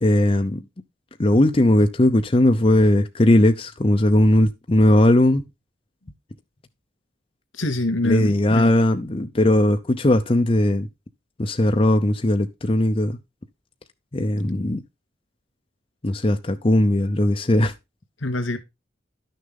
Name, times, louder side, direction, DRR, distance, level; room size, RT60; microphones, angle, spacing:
voice 1, 0.0-0.6 1.2-5.4 8.0-10.9 11.4-13.2 14.1-14.8 16.0-17.7, left 1 dB, 30° left, 0.6 m, -18 dB
voice 2, 7.5-8.7 18.2-18.6, left 1 dB, 85° left, 2.4 m, -24 dB
11.5 x 6.6 x 3.7 m
head